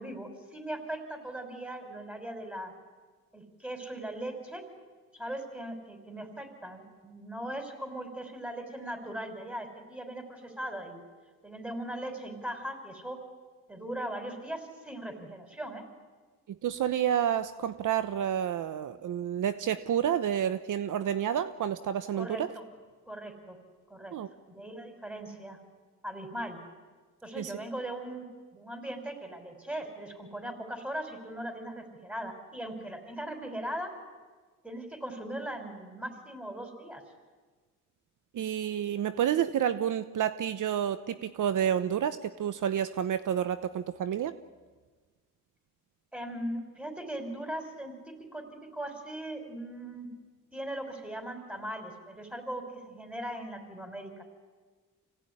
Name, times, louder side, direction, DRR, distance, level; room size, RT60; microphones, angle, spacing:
voice 1, 0.0-2.7 3.3-4.6 5.1-11.0 11.4-13.2 13.7-15.8 22.1-22.6 23.1-23.6 23.9-24.1 24.5-25.6 26.0-26.6 27.2-28.3 28.5-33.9 34.6-37.0 46.1-50.1 50.5-54.2, right 1 dB, 5° right, 5 dB, 5.8 m, -39 dB
voice 2, 16.5-22.5 24.1-24.3 27.4-27.5 38.3-44.4, right 9 dB, 70° right, 12 dB, 1.0 m, -29 dB
26.0 x 17.5 x 9.9 m, 1.4 s
cardioid pair, 70°, 33 cm